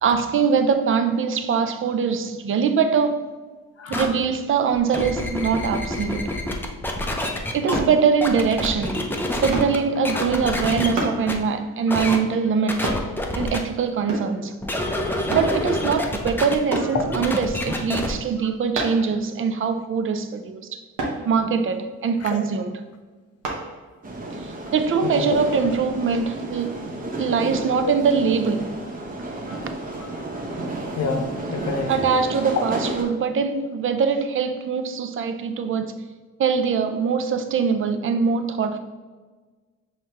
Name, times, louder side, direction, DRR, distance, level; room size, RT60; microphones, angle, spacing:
voice 1, 0.0-3.3 3.9-6.3 7.5-13.0 13.3-14.6 15.3-20.8 21.3-22.8 24.4-26.8 27.2-28.8 31.9-36.0 36.4-38.8, right 6 dB, 45° right, 0.5 m, -23 dB
voice 2, 3.8-4.1 11.9-12.0 12.8-12.9 15.0-15.3 16.9-17.0 18.4-18.5 22.2-22.4 25.0-25.7 27.8-27.9 29.4-29.6 30.0-30.5 31.0-32.1, left 4 dB, 55° left, 0.8 m, -29 dB
sound 1, 3.9-4.1 4.7-7.8 8.2-9.8 10.0-10.9 11.3-11.4 11.9-12.2 12.7-13.6 14.6-18.1, left 1 dB, 5° left, 0.5 m, -27 dB
sound 2, 7.7-7.9 9.5-9.8 11.0-11.2 12.8-13.1 14.1-14.4 15.3-15.5 16.7-17.0 18.7-19.1 21.0-21.2 23.4-23.6 24.2-24.3, right 2 dB, 85° right, 1.1 m, -27 dB
sound 3, 24.0-33.0, right 2 dB, 30° right, 0.9 m, -32 dB
5.5 x 3.2 x 2.9 m
cardioid pair, 90°, 30 cm